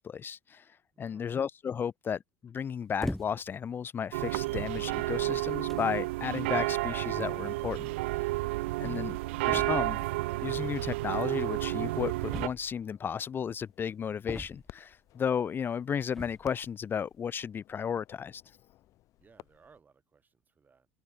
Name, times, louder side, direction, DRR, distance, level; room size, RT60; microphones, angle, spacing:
voice 1, 0.0-7.9 8.8-9.2 9.4-10.0 10.4-18.4, left 7 dB, 30° left, 0.9 m, -34 dB
voice 2, 0.9-1.4 19.2-20.9, right 5 dB, 25° right, 7.9 m, -62 dB
sound 1, 3.0-3.6 4.4-4.5 5.3-5.4 5.7-6.0 7.2-7.3 7.5-7.6 7.9-8.0 9.5-10.0 12.3-13.0 14.3-14.9 16.1-16.6, left 1 dB, 5° left, 1.4 m, -39 dB
sound 2, 4.1-12.5, right 21 dB, 65° right, 0.6 m, -31 dB
sound 3, 7.4-19.8, left 15 dB, 50° left, 5.2 m, -59 dB
figure-of-eight pair, 70°, 7 cm